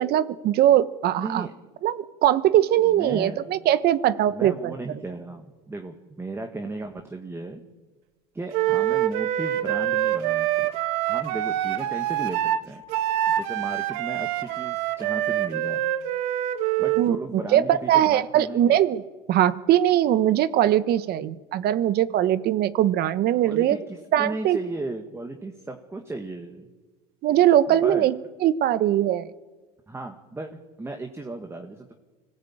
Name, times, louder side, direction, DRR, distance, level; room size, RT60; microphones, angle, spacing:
voice 1, 0.0-1.5 1.8-4.5 17.0-17.2 17.5-19.0 19.3-23.8 24.1-24.6 27.2-28.1 28.4-29.3, right 12 dB, 50° right, 15 dB, 1.2 m, -21 dB
voice 2, 1.2-1.5 2.8-3.5 4.3-7.6 8.3-10.7 11.1-12.8 13.3-15.8 16.8-18.8 23.4-26.7 27.7-28.1 29.9-31.9, right 2 dB, 10° right, 4 dB, 1.8 m, -35 dB
Wind instrument woodwind instrument, 8.5-17.1, right 13 dB, 70° right, 1.5 m, -25 dB
25.0 x 17.5 x 8.8 m, 1.3 s
supercardioid pair, 105°, 20 cm